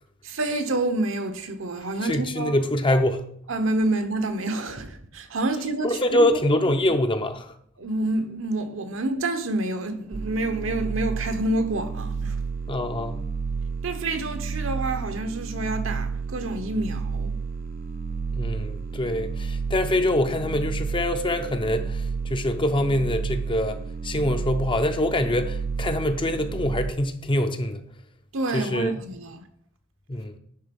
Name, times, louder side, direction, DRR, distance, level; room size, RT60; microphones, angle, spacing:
voice 1, 0.2-2.6 3.5-6.0 6.8-6.9 7.8-12.4 13.8-17.4 28.3-29.4, right 2 dB, 65° right, 1.0 m, -28 dB
voice 2, 2.1-3.2 5.8-7.5 12.7-13.3 18.4-27.8 28.5-29.0 30.1-30.3, left 1 dB, 25° left, 0.6 m, -24 dB
sound 1, 10.1-26.9, right 5 dB, 45° right, 0.4 m, -31 dB
10.5 x 3.9 x 5.3 m
head